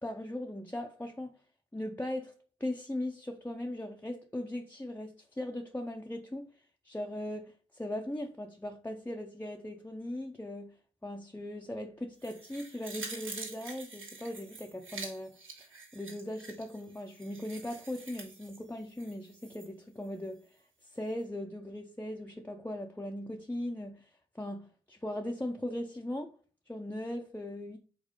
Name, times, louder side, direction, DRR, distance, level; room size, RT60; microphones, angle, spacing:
voice 1, 0.0-1.4 1.7-2.3 2.6-10.7 11.0-26.3 26.7-27.8, left 1 dB, 10° left, 0.5 m, -39 dB
sound 1, 12.2-19.7 20.0-20.1, right 3 dB, 70° right, 1.8 m, -46 dB
5.1 x 4.1 x 5.3 m
wide cardioid pair, 135°, 21 cm